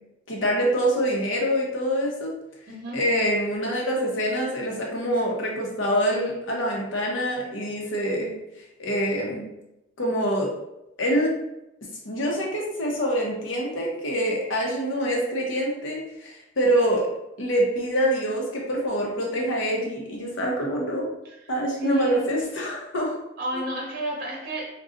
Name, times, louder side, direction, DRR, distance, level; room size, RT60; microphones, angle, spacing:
voice 1, 0.3-2.3 2.9-8.3 8.8-9.4 10.0-10.5 11.0-11.3 12.0-17.1 17.4-21.1 21.5-23.2 23.5-23.6, equal, 75° left, -1 dB, 0.8 m, -25 dB
voice 2, 2.7-3.0 21.2-21.4 21.8-22.2 23.4-24.6, right 1 dB, 50° right, -2 dB, 0.7 m, -31 dB
3.8 x 2.3 x 2.5 m, 0.88 s
head